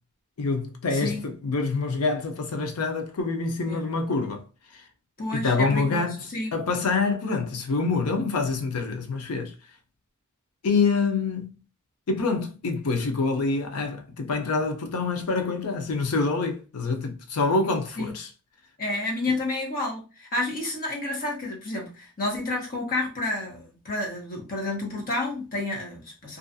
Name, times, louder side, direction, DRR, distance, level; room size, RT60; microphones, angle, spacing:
voice 1, 0.4-1.2 1.4-4.4 5.3-6.2 6.5-9.5 10.6-11.5 12.1-18.3, left 4 dB, 90° left, 0.6 m, -26 dB
voice 2, 0.9-1.3 3.6-3.9 5.2-6.5 18.0-18.1 18.8-26.4, left 2 dB, 40° left, 0.9 m, -30 dB
2.5 x 2.3 x 2.6 m
head